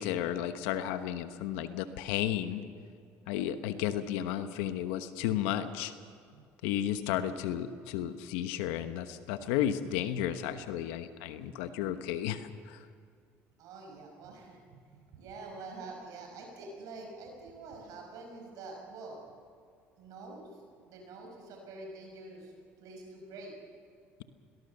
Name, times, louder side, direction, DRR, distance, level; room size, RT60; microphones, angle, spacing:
voice 1, 0.0-2.6 3.3-5.9 6.6-12.8, left 11 dB, 80° left, 10 dB, 1.2 m, -33 dB
voice 2, 13.6-19.2 20.0-22.5 22.8-23.5, right 3 dB, 70° right, 1 dB, 5.7 m, -46 dB
22.5 x 18.5 x 6.8 m, 2.2 s
supercardioid pair, 70°, 6 cm